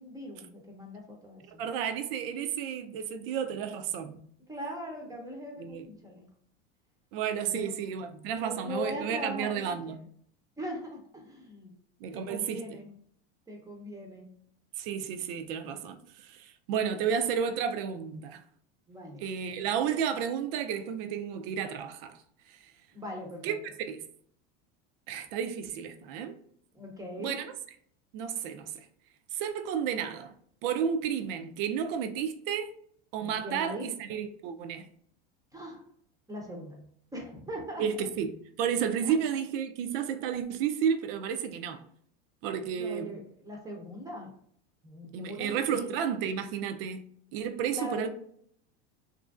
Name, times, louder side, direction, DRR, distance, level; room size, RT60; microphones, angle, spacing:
voice 1, 0.0-1.6 4.5-6.3 7.5-7.6 8.3-9.9 10.6-11.7 12.0-12.9 13.5-14.3 18.9-19.3 22.9-23.6 26.7-27.4 33.2-33.9 35.5-35.8 36.3-36.8 37.1-37.8 39.0-39.1 42.7-44.3 44.8-45.9 47.7-48.1, equal, 10° right, 0.6 m, -40 dB
voice 2, 1.6-4.2 5.6-5.8 7.1-10.0 12.0-12.6 14.8-18.4 19.2-22.2 22.5-22.7 23.4-23.5 23.9-24.0 25.1-26.4 27.2-27.5 28.1-28.7 29.3-30.3 30.6-32.7 33.1-34.9 37.8-38.3 38.6-41.8 42.4-43.1 45.1-47.0 47.3-48.1, right 8 dB, 65° right, 0.5 m, -32 dB
3.0 x 2.5 x 2.4 m
supercardioid pair, 120°, 31 cm